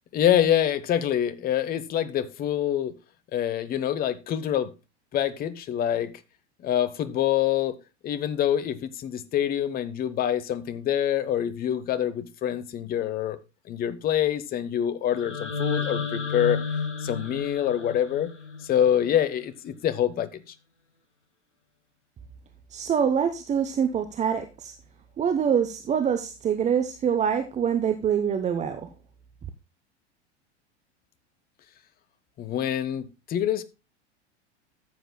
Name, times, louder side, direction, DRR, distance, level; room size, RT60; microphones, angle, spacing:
voice 1, 0.1-2.9 3.3-4.7 5.1-6.1 6.6-7.8 8.0-13.4 13.7-16.6 17.0-18.3 18.6-20.4 32.4-33.6, left 10 dB, 25° left, 0.9 m, -26 dB
sound 1, 15.1-19.2, left 5 dB, 80° left, 1.7 m, -31 dB
voice 2, 22.7-24.7 25.2-28.9, right 8 dB, 20° right, 0.8 m, -25 dB
14.5 x 7.8 x 2.2 m
figure-of-eight pair, 90°, 35 cm